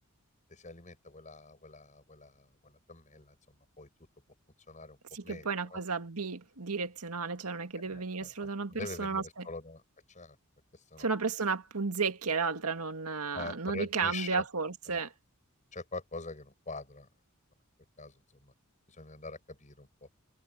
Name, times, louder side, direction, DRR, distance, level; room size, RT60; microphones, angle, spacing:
voice 1, 0.5-3.9 4.7-5.8 7.9-9.8 10.1-10.4 10.7-11.1 13.3-14.4 14.9-15.0 15.7-17.1 18.0-18.5 18.9-20.1, left 3 dB, 35° left, 6.5 m, -44 dB
voice 2, 5.1-9.5 11.0-15.1, right 4 dB, 90° right, 1.9 m, -33 dB
head